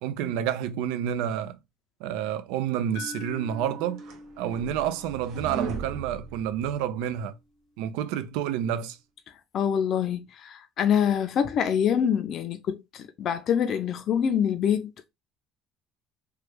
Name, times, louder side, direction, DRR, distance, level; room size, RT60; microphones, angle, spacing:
voice 1, 0.0-1.6 2.0-4.0 4.4-7.3 7.8-9.0, right 9 dB, 85° right, 0.3 m, -29 dB
sound 1, 2.9-7.0, left 4 dB, 75° left, 0.7 m, -45 dB
sound 2, 3.5-7.2, right 6 dB, 65° right, 0.8 m, -38 dB
voice 2, 9.5-15.1, left 8 dB, 45° left, 0.4 m, -25 dB
3.1 x 2.2 x 3.2 m
cardioid pair, 125°, 0 cm